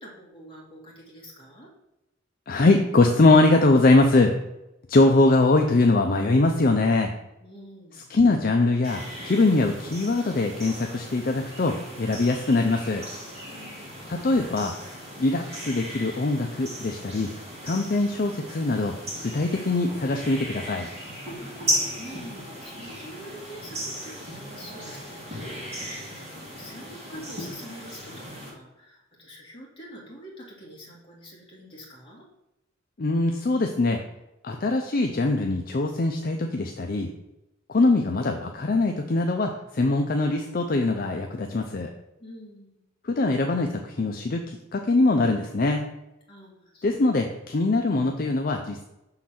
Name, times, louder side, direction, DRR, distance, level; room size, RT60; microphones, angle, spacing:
voice 1, 0.0-1.7 7.4-8.0 13.5-14.2 21.4-25.8 26.1-32.3 42.2-42.8 46.3-46.9, equal, 25° left, -4 dB, 2.0 m, -46 dB
voice 2, 2.5-4.4 4.9-7.1 8.1-13.0 14.1-14.7 15.2-17.3 17.6-20.9 33.0-34.0 34.4-37.1 37.7-41.9 43.0-45.8 46.8-48.8, left 2 dB, 45° left, 3 dB, 0.5 m, -22 dB
sound 1, 8.8-28.5, equal, 30° right, 2.3 m, -36 dB
6.2 x 3.9 x 5.9 m, 0.92 s
head